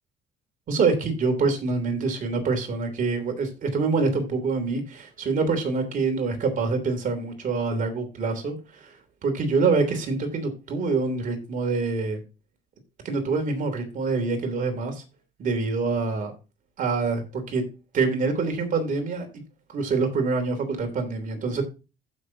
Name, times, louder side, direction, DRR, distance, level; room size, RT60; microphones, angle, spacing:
voice 1, 0.7-9.0 9.2-12.2 13.0-15.0 15.4-16.3 16.8-17.6 17.9-19.3 19.7-21.6, right 4 dB, 50° right, 5 dB, 3.1 m, -25 dB
15.0 x 6.2 x 2.8 m, 0.29 s
cardioid pair, 110°, 17 cm